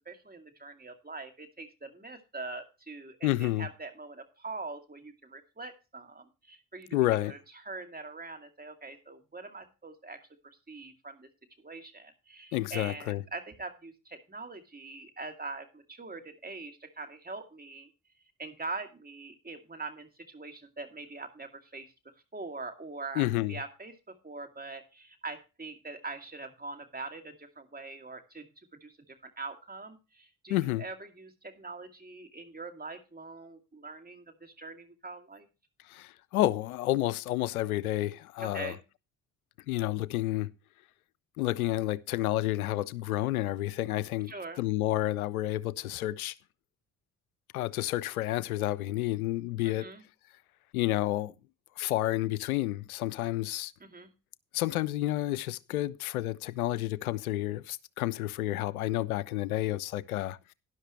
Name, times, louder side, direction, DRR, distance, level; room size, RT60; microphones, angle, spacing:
voice 1, 0.1-7.4 7.6-10.3 10.7-11.3 11.6-17.9 18.4-21.9 22.3-23.9 24.2-35.5 38.4-38.8 44.3-44.6 49.6-50.0 53.8-54.1, right 3 dB, 20° right, 2.4 m, -43 dB
voice 2, 3.2-3.7 6.9-7.3 12.5-13.2 23.2-23.5 30.5-30.8 35.9-38.7 39.7-40.5 41.4-44.3 44.6-46.3 47.5-49.9 50.7-51.3 51.8-53.7 54.5-60.5, left 15 dB, 80° left, 0.6 m, -30 dB
12.5 x 11.0 x 3.2 m
figure-of-eight pair, 45°, 42 cm